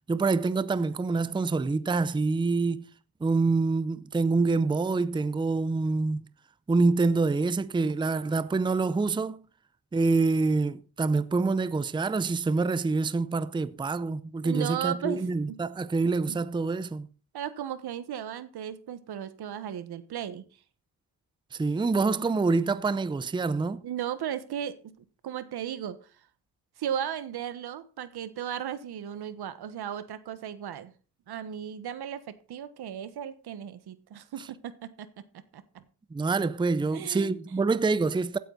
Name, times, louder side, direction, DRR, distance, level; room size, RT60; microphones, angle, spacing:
voice 1, 0.1-2.8 3.2-6.3 6.7-9.4 9.9-17.1 21.5-23.8 36.1-38.4, right 3 dB, 15° right, 0.5 m, -26 dB
voice 2, 14.4-15.6 16.3-16.4 17.3-20.4 23.8-24.9 25.2-26.0 26.8-30.9 31.3-35.6 36.9-37.4, right 9 dB, 85° right, 1.3 m, -36 dB
15.5 x 9.2 x 4.0 m
wide cardioid pair, 130°, 38 cm